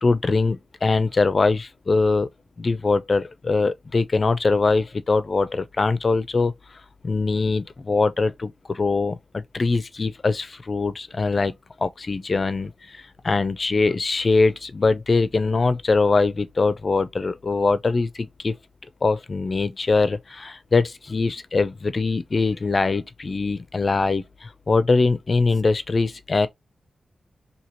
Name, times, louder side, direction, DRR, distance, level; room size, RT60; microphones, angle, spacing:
voice 1, 0.0-2.3 2.6-6.5 7.0-18.6 19.0-26.5, left 3 dB, 35° left, 0.4 m, -22 dB
2.8 x 2.7 x 4.4 m
wide cardioid pair, 160°, 0 cm